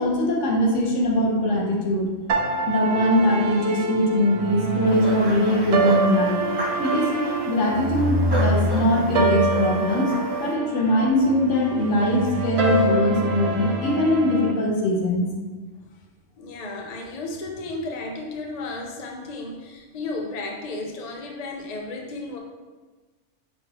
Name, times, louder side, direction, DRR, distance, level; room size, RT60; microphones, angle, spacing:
voice 1, 0.0-2.1 2.7-6.4 6.8-15.3, left 1 dB, 75° left, -1 dB, 1.2 m, -22 dB
sound 1, 2.3-14.5, right 2 dB, 65° right, 0.8 m, -25 dB
sound 2, 4.9-10.5, right 1 dB, 30° right, 0.5 m, -33 dB
voice 2, 16.4-22.4, left 2 dB, 50° left, 1 dB, 0.5 m, -33 dB
5.5 x 3.1 x 2.9 m, 1.3 s
omnidirectional pair, 1.3 m